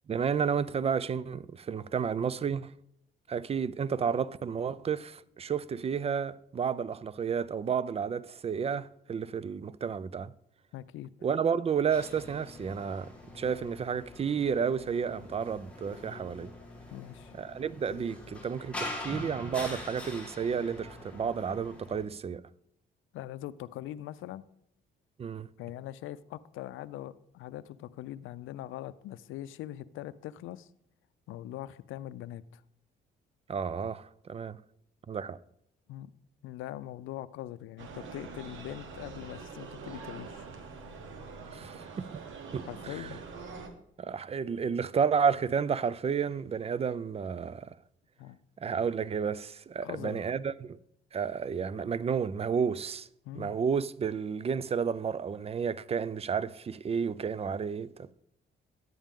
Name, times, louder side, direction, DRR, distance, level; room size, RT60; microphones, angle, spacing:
voice 1, 0.1-2.7 3.3-10.3 11.2-16.5 17.4-22.4 25.2-25.5 33.5-34.6 35.1-35.4 41.5-42.2 42.5-43.1 44.0-47.8 48.6-50.8 51.1-53.1 53.3-58.1, right 6 dB, 30° right, 0.4 m, -31 dB
voice 2, 10.7-11.1 16.9-17.3 23.1-24.4 25.6-30.7 31.3-32.6 35.9-36.1 36.4-40.5 42.7-43.2 48.2-48.4 49.8-50.2 53.2-53.6, left 13 dB, 85° left, 0.5 m, -42 dB
sound 1, 11.9-22.0, left 1 dB, 5° left, 2.4 m, -44 dB
sound 2, 37.8-43.7, right 4 dB, 80° right, 1.4 m, -44 dB
11.0 x 8.8 x 3.6 m
cardioid pair, 90°, 20 cm